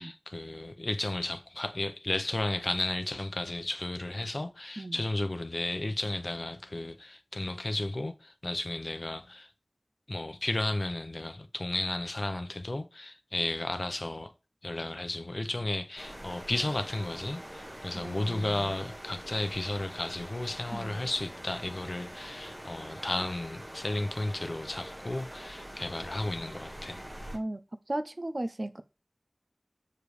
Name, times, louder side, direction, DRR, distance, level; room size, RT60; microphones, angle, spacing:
voice 1, 0.0-9.5 10.1-14.3 14.6-27.0, left 2 dB, 75° left, 0.7 m, -33 dB
voice 2, 4.8-5.1 17.9-18.8 20.7-21.0 27.3-27.6 27.9-28.8, right 1 dB, 65° right, 0.6 m, -36 dB
sound 1, 16.0-27.4, equal, 35° right, 1.2 m, -44 dB
6.7 x 5.0 x 3.2 m
wide cardioid pair, 40°, 0 cm